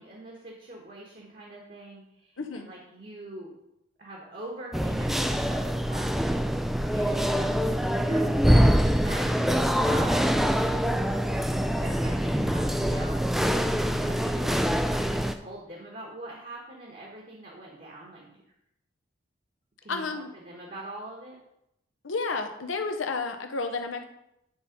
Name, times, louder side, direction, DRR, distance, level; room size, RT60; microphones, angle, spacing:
voice 1, 0.0-3.5 4.0-6.1 6.9-10.4 11.6-13.2 13.8-18.4 19.8-21.4, right 1 dB, 45° right, -2 dB, 1.3 m, -43 dB
voice 2, 2.4-2.7 19.9-20.3 22.0-24.0, left 4 dB, 90° left, 7 dB, 0.9 m, -31 dB
sound 1, 4.7-15.3, equal, ahead, 0.3 m, -24 dB
9.6 x 4.2 x 5.1 m, 0.82 s
head